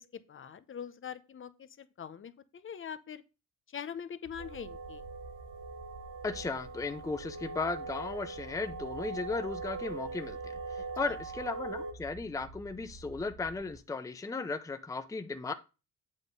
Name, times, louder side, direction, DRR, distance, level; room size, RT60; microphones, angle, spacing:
voice 1, 0.0-3.2 3.7-5.0 11.1-11.2, left 8 dB, 40° left, 0.8 m, -43 dB
sound 1, 4.2-13.8, right 3 dB, 50° right, 1.9 m, -51 dB
sound 2, 4.4-11.9, right 3 dB, 75° right, 1.5 m, -41 dB
voice 2, 6.2-15.5, left 3 dB, 10° left, 0.6 m, -36 dB
8.3 x 3.6 x 6.6 m
cardioid pair, 90°, 30 cm